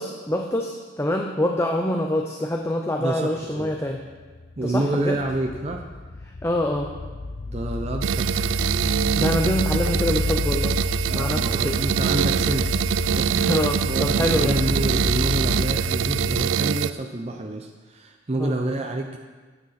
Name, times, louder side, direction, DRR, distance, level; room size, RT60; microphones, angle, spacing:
voice 1, 0.0-4.0 4.6-5.2 6.4-6.9 9.2-10.8 11.1-11.8 13.3-14.6 18.3-18.6, left 1 dB, 15° left, 2 dB, 0.6 m, -25 dB
voice 2, 3.0-3.7 4.6-5.9 7.5-8.6 11.1-12.8 13.1-13.4 13.9-19.2, right 2 dB, 35° right, 2 dB, 0.6 m, -28 dB
sound 1, 3.8-16.5, left 2 dB, 55° left, 0.6 m, -30 dB
sound 2, 8.0-16.9, right 8 dB, 90° right, 0.3 m, -24 dB
13.5 x 9.0 x 4.2 m, 1.4 s
head